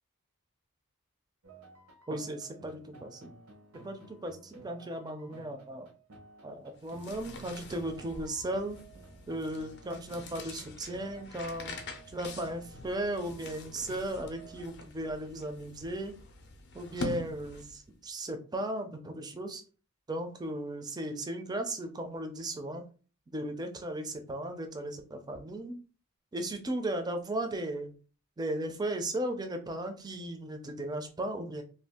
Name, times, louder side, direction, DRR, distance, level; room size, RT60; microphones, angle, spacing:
sound 1, 1.4-14.7, right 3 dB, 85° right, 0.8 m, -54 dB
voice 1, 2.1-3.3 3.8-5.9 6.4-8.8 9.3-11.8 12.1-16.1 16.7-19.6 20.1-22.8 23.3-25.8 26.3-27.9 28.4-31.6, right 1 dB, 20° right, 6 dB, 0.4 m, -36 dB
sound 2, 6.7-17.9, left 2 dB, 50° left, 0.5 m, -45 dB
2.6 x 2.3 x 3.5 m, 0.37 s
head